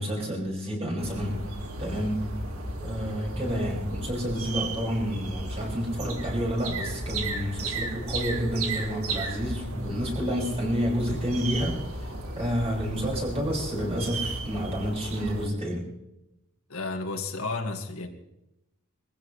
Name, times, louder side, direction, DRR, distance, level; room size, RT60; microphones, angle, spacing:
voice 1, 0.0-1.4 1.8-2.2 2.8-15.8, equal, 30° right, -3 dB, 6.4 m, -29 dB
sound 1, 1.0-15.5, right 2 dB, 75° right, 2.5 m, -34 dB
voice 2, 16.7-18.1, left 3 dB, 75° left, 3 dB, 2.0 m, -32 dB
23.5 x 15.5 x 3.3 m, 0.87 s
head